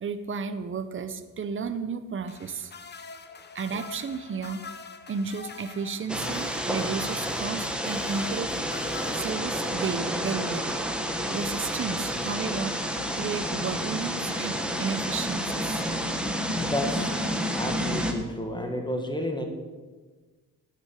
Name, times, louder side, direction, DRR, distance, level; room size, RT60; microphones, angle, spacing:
voice 1, 0.0-2.7 3.5-4.7 5.1-8.5 9.1-10.8 11.3-12.8 13.1-15.8, right 5 dB, 35° right, 11 dB, 0.9 m, -33 dB
sound 1, 2.3-9.9 11.2-11.4, left 5 dB, 30° left, 1.0 m, -44 dB
sound 2, 6.1-18.1, equal, 5° right, 1.3 m, -30 dB
voice 2, 16.6-17.1 17.5-19.4, left 1 dB, 15° left, 4 dB, 1.9 m, -31 dB
12.5 x 7.9 x 8.6 m, 1.3 s
wide cardioid pair, 150°, 34 cm